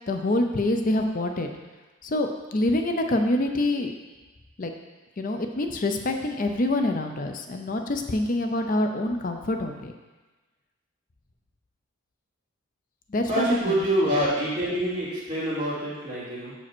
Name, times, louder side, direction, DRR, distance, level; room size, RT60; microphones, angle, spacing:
voice 1, 0.1-1.5 2.0-3.9 4.6-4.7 5.2-9.9 13.1-13.7, left 1 dB, 40° left, 4 dB, 0.5 m, -26 dB
voice 2, 13.3-16.5, right 1 dB, 25° right, -10 dB, 2.7 m, -26 dB
5.5 x 5.0 x 6.0 m, 1.2 s
head